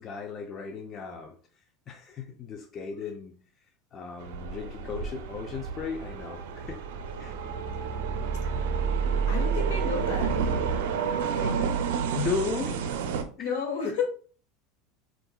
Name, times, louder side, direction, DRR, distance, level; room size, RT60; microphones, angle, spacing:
voice 1, 0.0-1.3 1.9-3.4 3.9-6.8 7.2-7.4 12.1-12.8 13.4-13.5 13.8-13.9, left 5 dB, 35° left, 3 dB, 0.4 m, -35 dB
sound 1, 4.2-13.2, right 6 dB, 80° right, 0.4 m, -31 dB
sound 2, 7.0-10.8, right 5 dB, 25° right, 1.1 m, -30 dB
voice 2, 9.3-10.3 11.3-11.6 13.4-14.0, left 5 dB, 75° left, 1 dB, 1.2 m, -32 dB
3.6 x 2.4 x 2.3 m, 0.42 s
supercardioid pair, 115°, 0 cm